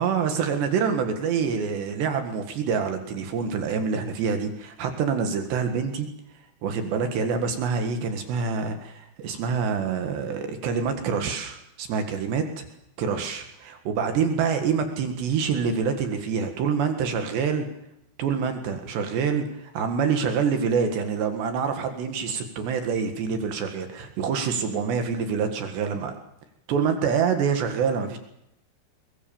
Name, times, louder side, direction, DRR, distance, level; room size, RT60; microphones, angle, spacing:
voice 1, 0.0-6.1 6.6-12.7 13.0-13.7 14.0-17.7 18.2-26.1 26.7-28.2, right 6 dB, 70° right, 6 dB, 3.9 m, -26 dB
23.0 x 22.0 x 7.2 m, 0.83 s
omnidirectional pair, 5.3 m